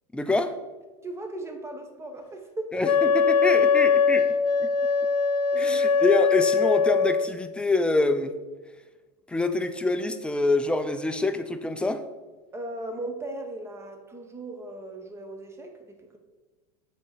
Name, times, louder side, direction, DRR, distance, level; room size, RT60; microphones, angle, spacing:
voice 1, 0.1-0.6 2.7-4.3 4.6-4.7 5.6-8.3 9.3-12.0, left 2 dB, 5° left, 9 dB, 0.4 m, -26 dB
voice 2, 1.0-2.9 5.5-5.8 12.5-16.2, right 2 dB, 15° right, 5 dB, 0.9 m, -37 dB
Wind instrument woodwind instrument, 2.8-7.3, left 6 dB, 75° left, 0.4 m, -21 dB
7.2 x 3.7 x 4.5 m, 1.2 s
hypercardioid pair, 100°, 20 cm